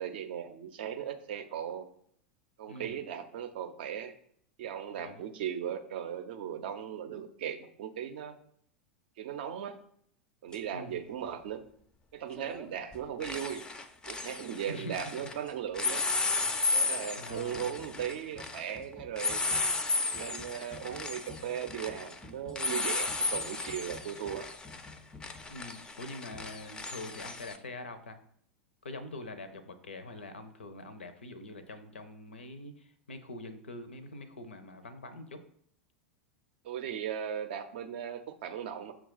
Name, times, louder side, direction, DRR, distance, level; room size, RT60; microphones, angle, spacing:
voice 1, 0.0-1.9 2.6-4.1 4.6-8.4 9.2-9.8 10.4-11.6 12.1-13.7 14.1-16.1 16.7-19.4 20.1-24.5 36.6-38.9, right 9 dB, 55° right, 8 dB, 0.5 m, -37 dB
voice 2, 2.7-3.0 4.9-5.3 10.7-11.0 14.6-15.0 17.2-17.7 25.5-28.2 28.8-35.4, left 2 dB, 75° left, 10 dB, 0.5 m, -44 dB
sound 1, 10.5-10.6 12.4-12.7 12.9-15.4 15.7-27.6, left 3 dB, 15° left, 0.3 m, -34 dB
6.0 x 2.3 x 3.9 m, 0.66 s
figure-of-eight pair, 90°, 6 cm